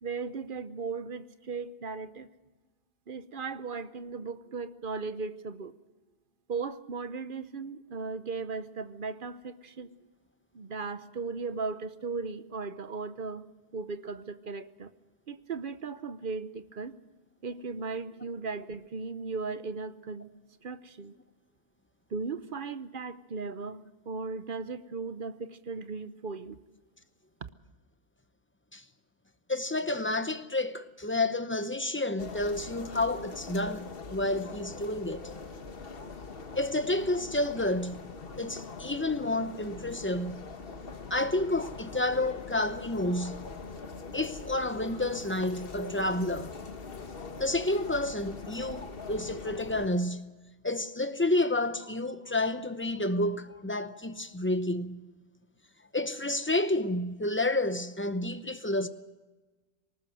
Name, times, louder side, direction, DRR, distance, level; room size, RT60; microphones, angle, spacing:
voice 1, 0.0-2.3 3.1-5.7 6.5-9.9 10.5-13.4 13.7-14.9 15.3-16.9 17.4-20.3 20.6-21.1 22.1-26.6 27.4-27.5, right 4 dB, 55° right, 0.9 m, -37 dB
voice 2, 29.5-35.3 36.6-38.0 38.4-40.4 41.1-43.4 44.1-46.5 47.4-50.2 50.6-55.0 55.9-58.9, left 2 dB, 10° left, 0.8 m, -30 dB
sound 1, 32.2-49.9, left 4 dB, 55° left, 1.5 m, -42 dB
19.5 x 19.5 x 7.7 m
omnidirectional pair, 1.1 m